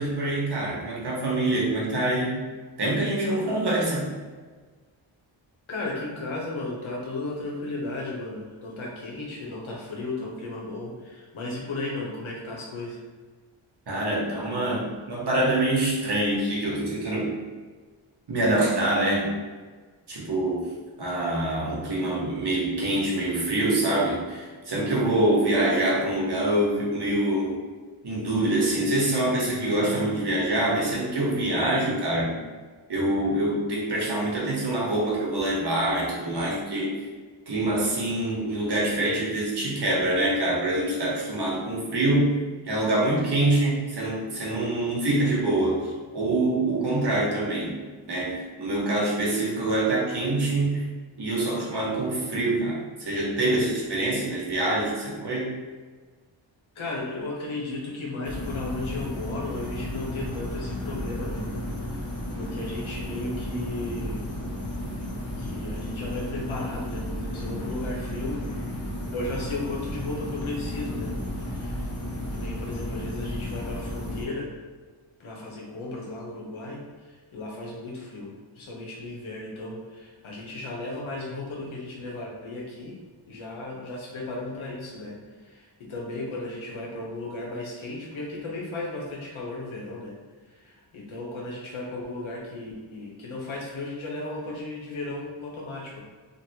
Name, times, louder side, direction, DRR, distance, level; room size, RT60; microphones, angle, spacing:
voice 1, 0.0-2.5 2.8-4.1 13.9-17.4 18.3-19.4 20.1-20.7 21.0-27.6 28.0-32.4 32.9-37.1 37.5-42.4 42.6-50.8 51.2-55.6, right 1 dB, 55° right, -4 dB, 1.1 m, -25 dB
voice 2, 5.7-13.0 25.1-25.2 55.2-55.3 56.7-61.5 62.3-64.3 65.4-68.4 69.1-71.9 72.2-74.5 75.2-83.0 83.3-90.2 90.5-96.0, left 2 dB, 70° left, -3 dB, 1.0 m, -35 dB
sound 1, 58.2-74.2, left 1 dB, 30° left, 0.8 m, -33 dB
3.1 x 2.5 x 2.8 m, 1.4 s
cardioid pair, 55°, 49 cm